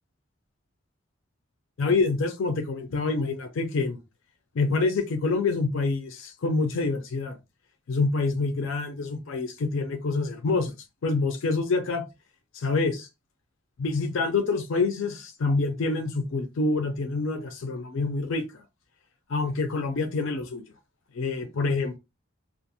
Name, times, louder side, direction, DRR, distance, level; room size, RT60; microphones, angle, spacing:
voice 1, 1.8-4.0 4.5-7.4 7.9-10.7 11.0-12.0 12.5-13.1 13.8-18.6 19.3-20.6 21.1-22.0, left 3 dB, 75° left, 0.4 m, -26 dB
2.4 x 2.0 x 2.6 m
head